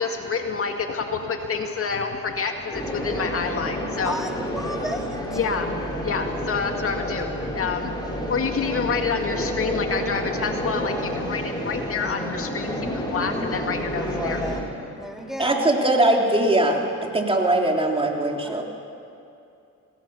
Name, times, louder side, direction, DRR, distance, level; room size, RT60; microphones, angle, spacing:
voice 1, 0.0-4.1 5.3-8.0 8.3-14.4, left 5 dB, 45° left, 4 dB, 2.0 m, -28 dB
sound 1, 2.7-14.6, equal, 15° left, 5.0 m, -29 dB
voice 2, 4.0-5.4 14.0-14.6 15.0-15.7 18.4-18.6, equal, ahead, 2 dB, 2.8 m, -33 dB
voice 3, 15.4-16.8 17.1-18.6, right 1 dB, 20° right, 1 dB, 3.5 m, -20 dB
26.5 x 20.0 x 7.1 m, 2.6 s
cardioid pair, 90°, 30 cm